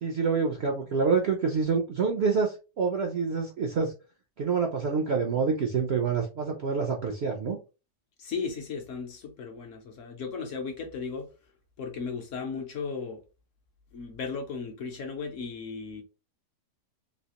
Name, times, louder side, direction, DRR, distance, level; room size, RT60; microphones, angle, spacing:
voice 1, 0.0-3.9 4.4-7.6, right 5 dB, 65° right, 0.6 m, -27 dB
voice 2, 8.2-11.3 11.8-13.2 13.9-16.0, left 5 dB, 65° left, 0.9 m, -36 dB
3.2 x 2.8 x 2.8 m
omnidirectional pair, 1.7 m